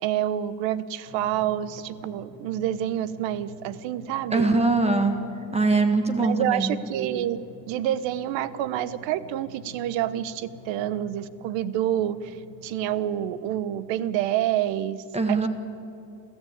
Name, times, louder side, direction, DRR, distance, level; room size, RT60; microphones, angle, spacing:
voice 1, 0.0-4.5 6.2-7.4 7.7-12.4 12.6-15.5, right 11 dB, 85° right, 16 dB, 1.0 m, -28 dB
Drum, 1.0-14.0, equal, 70° right, 6.1 m, -48 dB
voice 2, 4.3-5.2 5.5-6.8 15.1-15.5, right 3 dB, 15° right, 7 dB, 1.5 m, -22 dB
30.0 x 13.5 x 8.8 m, 2.6 s
cardioid pair, 150°, 44 cm